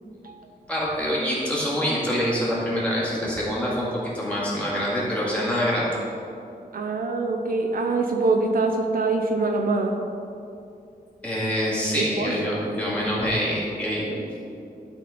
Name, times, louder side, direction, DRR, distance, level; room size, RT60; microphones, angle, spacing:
voice 1, 0.7-3.9 4.1-5.9 11.2-14.2, equal, 10° left, -7 dB, 2.1 m, -25 dB
voice 2, 6.7-9.9 11.9-12.3, right 3 dB, 65° right, 3 dB, 0.7 m, -24 dB
12.0 x 4.3 x 5.0 m, 2.7 s
wide cardioid pair, 175°, 16 cm